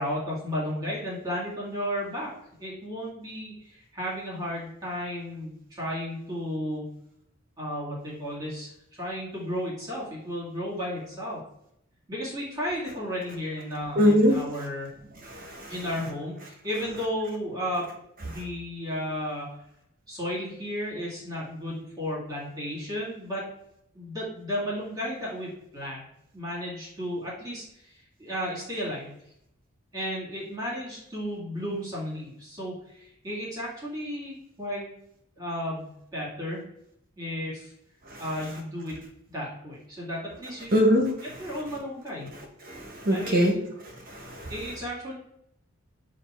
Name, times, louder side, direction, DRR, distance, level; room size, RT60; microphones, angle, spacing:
voice 1, 0.0-2.3 2.6-6.9 7.6-11.4 12.1-14.9 15.7-17.9 18.2-19.5 20.1-23.4 23.9-26.0 26.3-29.1 29.9-34.9 35.4-36.6 37.2-37.7 38.2-38.9 39.3-40.9 41.4-42.3 43.1-43.7 44.5-45.1, equal, 15° right, -6 dB, 2.2 m, -33 dB
voice 2, 14.0-14.3 15.2-15.7 38.1-38.2 40.7-41.1 42.7-43.5 44.1-44.5, equal, 40° right, 1 dB, 1.1 m, -22 dB
7.8 x 2.7 x 4.4 m, 0.77 s
head